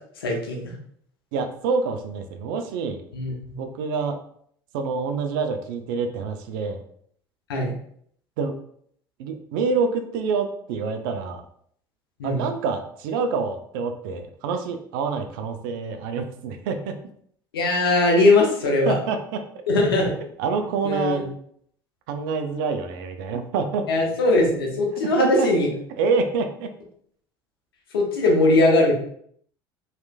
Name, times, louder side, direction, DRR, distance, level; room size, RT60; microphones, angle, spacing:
voice 1, 0.2-0.7 3.1-3.6 7.5-7.7 12.2-12.5 17.5-18.9 19.7-20.1 20.8-21.3 23.9-25.7 27.9-28.9, left 2 dB, 80° left, 0 dB, 0.7 m, -20 dB
voice 2, 1.3-3.0 3.6-4.2 4.7-6.8 8.4-8.5 9.2-11.4 12.2-17.0 18.9-19.4 20.4-21.2 22.1-23.9 25.0-25.5 26.0-26.7, right 5 dB, 65° right, 6 dB, 0.4 m, -27 dB
3.1 x 2.9 x 2.2 m, 0.64 s
figure-of-eight pair, 65°, 12 cm